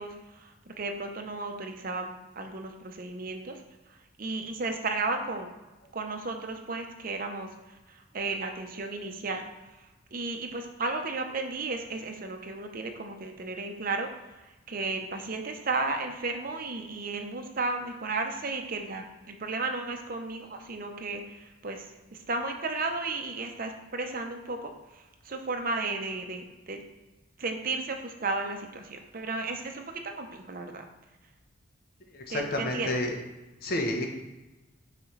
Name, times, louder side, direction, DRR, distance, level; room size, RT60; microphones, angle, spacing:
voice 1, 0.0-2.1 2.4-3.6 4.2-5.5 5.9-9.8 10.1-14.1 14.3-26.8 27.4-30.8 32.3-32.9, right 3 dB, 45° right, 4 dB, 0.7 m, -34 dB
voice 2, 32.1-33.1 33.6-34.1, left 1 dB, 50° left, 2 dB, 0.9 m, -30 dB
6.0 x 5.0 x 3.2 m, 1.1 s
head